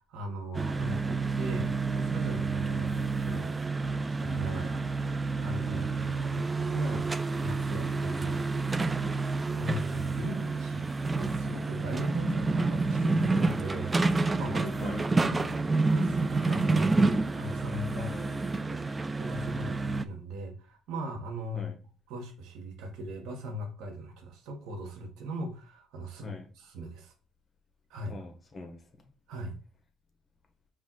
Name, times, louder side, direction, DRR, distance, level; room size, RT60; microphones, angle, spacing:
voice 1, 0.0-3.6 4.1-4.8 5.4-8.4 9.5-15.5 15.9-16.9 17.3-18.1 18.7-18.8 19.2-21.7 22.1-27.1 27.9-28.1 29.3-29.6, right 1 dB, 75° right, 4 dB, 1.0 m, -39 dB
sound 1, 0.5-20.1, right 3 dB, 25° right, 0.3 m, -29 dB
voice 2, 5.7-6.1 14.8-15.0 17.9-18.4 21.5-21.8 26.2-26.5 28.1-29.0, left 2 dB, 35° left, 5 dB, 1.2 m, -43 dB
4.9 x 2.5 x 3.8 m, 0.36 s
supercardioid pair, 75°, 0 cm